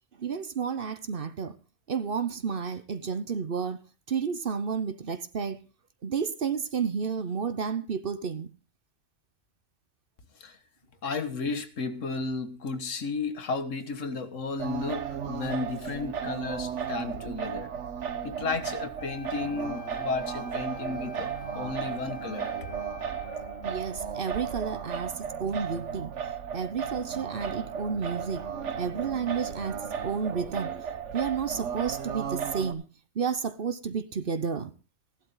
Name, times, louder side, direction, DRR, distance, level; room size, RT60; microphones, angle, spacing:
voice 1, 0.2-1.6 1.9-3.8 4.1-5.6 6.0-8.5 23.6-26.1 26.5-28.4 28.8-30.9 31.1-32.8 33.1-34.7, right 6 dB, 50° right, 1.0 m, -31 dB
voice 2, 11.0-17.7 18.2-22.5, left 4 dB, 85° left, 1.6 m, -33 dB
Singing, 14.6-32.7, right 7 dB, 70° right, 1.4 m, -35 dB
Wind instrument woodwind instrument, 18.9-24.1, left 9 dB, 55° left, 1.5 m, -46 dB
15.5 x 11.5 x 3.9 m
omnidirectional pair, 1.3 m